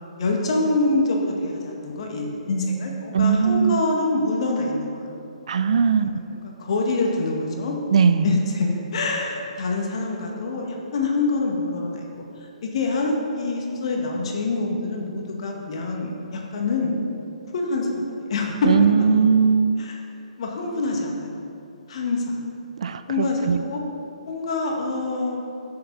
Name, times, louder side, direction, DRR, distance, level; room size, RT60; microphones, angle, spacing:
voice 1, 0.2-5.0 6.1-7.8 8.2-12.1 12.4-17.0 17.5-18.7 19.8-20.0 20.4-21.4 21.9-22.4 23.1-23.8 24.3-25.4, left 2 dB, 50° left, 0 dB, 1.8 m, -25 dB
voice 2, 3.1-3.9 5.5-6.1 7.9-8.4 18.7-19.8 22.8-23.6, right 6 dB, 55° right, 11 dB, 0.5 m, -19 dB
13.0 x 6.7 x 4.1 m, 2.6 s
figure-of-eight pair, 130°, 4 cm